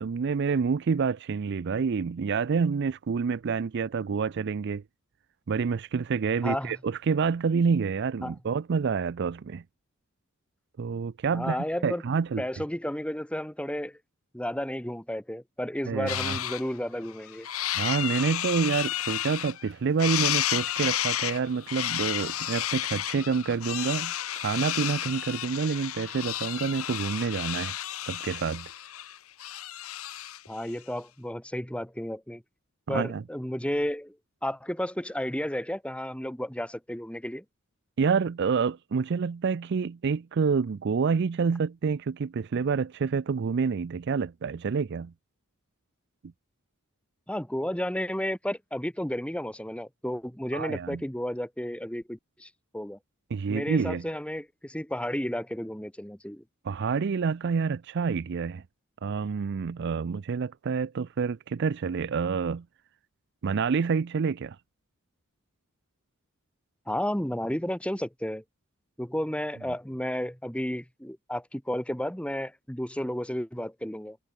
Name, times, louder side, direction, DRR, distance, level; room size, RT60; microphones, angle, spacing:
voice 1, 0.0-4.8 5.5-9.6 10.8-11.6 11.8-12.4 15.9-16.4 17.7-27.7 28.0-28.7 32.9-33.2 38.0-45.1 50.5-51.0 53.3-54.1 56.6-58.6 59.0-62.6 63.4-64.6, right 5 dB, 55° right, 0.4 m, -28 dB
voice 2, 6.4-6.7 8.2-8.3 11.3-12.0 12.4-14.0 14.3-17.5 30.5-32.4 32.9-34.2 34.4-37.4 47.3-53.0 53.5-56.4 66.9-68.4 69.0-74.2, equal, 5° left, 1.8 m, -32 dB
sound 1, 16.1-16.6 17.0-19.7 20.0-30.5, left 12 dB, 85° left, 1.2 m, -32 dB
head